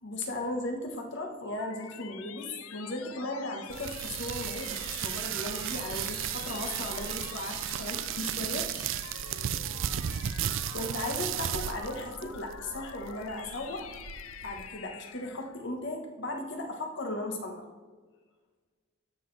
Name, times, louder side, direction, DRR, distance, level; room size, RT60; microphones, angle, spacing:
voice 1, 0.0-8.9 10.7-13.9 14.4-17.6, left 2 dB, 60° left, 3 dB, 1.2 m, -36 dB
sound 1, 1.0-15.6, left 8 dB, 85° left, 0.6 m, -46 dB
sound 2, 3.7-14.7, right 10 dB, 65° right, 0.4 m, -35 dB
14.5 x 6.1 x 3.3 m, 1.4 s
head